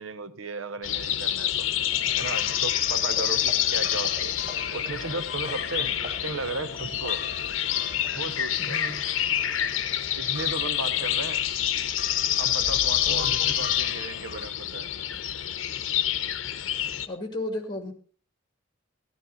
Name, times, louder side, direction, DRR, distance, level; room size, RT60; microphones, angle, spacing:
voice 1, 0.0-1.7 2.2-4.3 4.7-7.3 8.1-8.8 10.1-11.4 12.4-14.9, right 3 dB, 85° right, 0.9 m, -35 dB
sound 1, 0.8-17.1, left 11 dB, 75° left, 0.8 m, -27 dB
sound 2, 1.9-14.5, left 6 dB, 50° left, 0.5 m, -43 dB
sound 3, 2.9-9.5 9.8-10.1 10.5-10.6 11.0-11.1, right 2 dB, 35° right, 1.1 m, -46 dB
voice 2, 8.6-9.0 10.6-11.2 13.1-13.7 17.1-17.9, left 1 dB, 20° left, 2.1 m, -35 dB
13.5 x 12.0 x 3.9 m
head